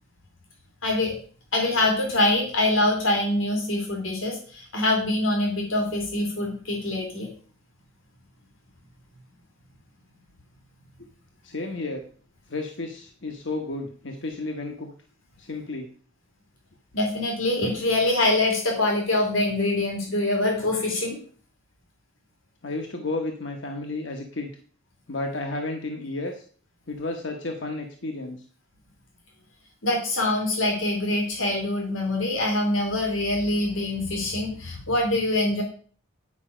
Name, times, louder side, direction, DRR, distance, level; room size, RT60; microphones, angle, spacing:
voice 1, 0.8-1.2 1.5-7.3 16.9-21.2 29.8-35.6, left 2 dB, 90° left, 0 dB, 2.7 m, -24 dB
voice 2, 11.4-12.0 12.5-14.9 15.4-15.9 22.6-24.5 25.1-26.4 26.9-28.4, left 2 dB, 70° left, 3 dB, 1.1 m, -32 dB
9.8 x 5.5 x 5.0 m, 0.43 s
head